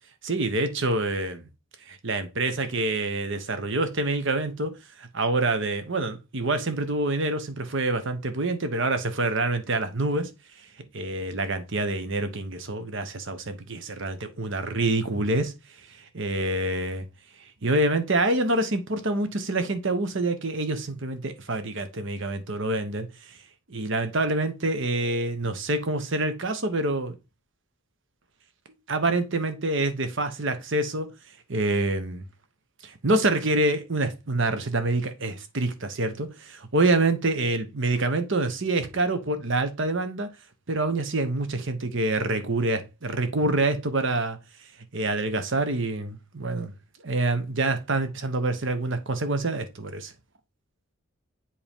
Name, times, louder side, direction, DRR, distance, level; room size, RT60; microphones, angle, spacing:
voice 1, 0.2-1.5 1.8-10.3 10.9-15.5 15.9-17.0 17.4-23.4 23.7-27.2 28.9-31.1 31.5-32.2 33.0-40.3 40.7-44.4 44.9-46.7 47.0-50.1, right 2 dB, 60° right, 1.1 m, -26 dB
7.7 x 4.3 x 3.6 m
head